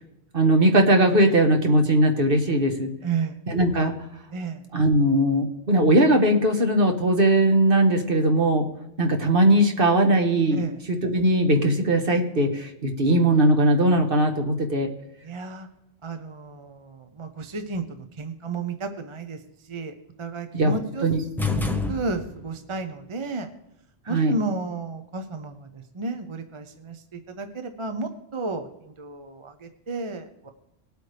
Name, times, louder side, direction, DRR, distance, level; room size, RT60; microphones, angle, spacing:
voice 1, 0.3-2.9 3.5-3.9 4.7-8.6 9.0-14.9 20.5-21.2 24.1-24.3, right 1 dB, 55° right, 3 dB, 1.6 m, -20 dB
voice 2, 3.0-3.4 4.3-4.6 10.5-10.8 15.2-15.7 16.0-19.4 19.7-19.9 20.2-21.1 21.9-23.5 24.1-30.5, right 3 dB, 30° right, 7 dB, 0.7 m, -32 dB
sound 1, 21.4-22.6, left 3 dB, ahead, 0.8 m, -27 dB
20.0 x 8.3 x 3.4 m, 0.83 s
omnidirectional pair, 1.1 m